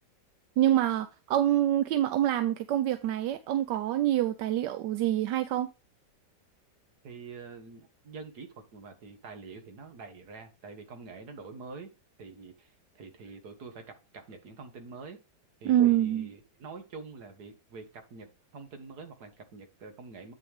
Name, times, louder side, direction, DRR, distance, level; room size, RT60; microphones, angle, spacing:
voice 1, 0.6-5.7 15.6-16.3, right 12 dB, 85° right, 1.3 m, -26 dB
voice 2, 7.0-11.9 12.2-15.2 15.6-20.3, right 4 dB, 65° right, 2.0 m, -46 dB
8.7 x 6.3 x 3.5 m
omnidirectional pair, 1.8 m